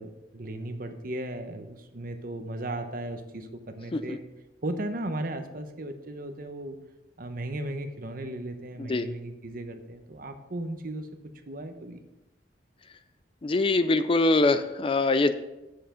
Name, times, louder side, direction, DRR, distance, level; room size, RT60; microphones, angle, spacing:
voice 1, 0.0-4.2 4.6-6.8 7.2-11.1 11.5-12.0, right 1 dB, 55° right, 7 dB, 0.9 m, -36 dB
voice 2, 13.4-15.3, left 2 dB, 30° left, 11 dB, 0.4 m, -23 dB
8.1 x 6.7 x 5.0 m, 0.99 s
head